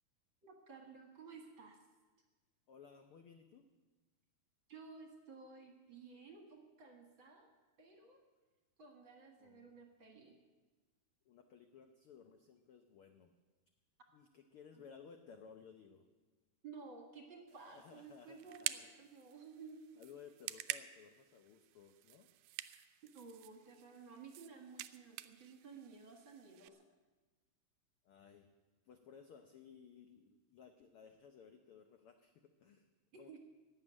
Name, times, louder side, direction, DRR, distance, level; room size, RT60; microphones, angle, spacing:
voice 1, 0.4-1.8 4.7-7.5 7.8-8.2 8.8-10.3 16.6-19.8 23.1-26.8 33.1-33.4, right 5 dB, 45° right, 3 dB, 2.0 m, -55 dB
voice 2, 2.7-3.7 9.4-9.8 11.2-13.4 14.1-16.1 17.7-19.1 19.9-22.3 28.0-28.5 28.8-32.9 33.2-33.4, left 6 dB, 80° left, 6 dB, 1.2 m, -59 dB
sound 1, 17.5-26.7, right 15 dB, 85° right, 2.1 m, -48 dB
16.0 x 7.5 x 9.9 m, 1.2 s
omnidirectional pair, 3.6 m